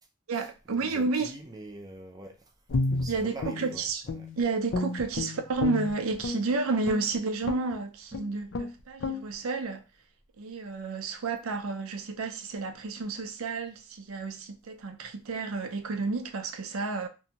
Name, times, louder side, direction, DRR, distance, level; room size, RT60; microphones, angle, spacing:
voice 1, 0.3-1.3 3.1-4.0 4.4-9.8 10.4-17.1, right 3 dB, 80° right, 0.5 m, -31 dB
voice 2, 0.8-2.4 3.0-3.8 4.2-4.3, right 1 dB, 20° right, 0.4 m, -43 dB
Guitar, 2.7-4.4 4.7-6.4 6.8-7.1 7.4-7.7 8.1-8.2 8.5-8.7 9.0-9.2, left 3 dB, 60° left, 0.4 m, -31 dB
2.6 x 2.2 x 2.8 m
head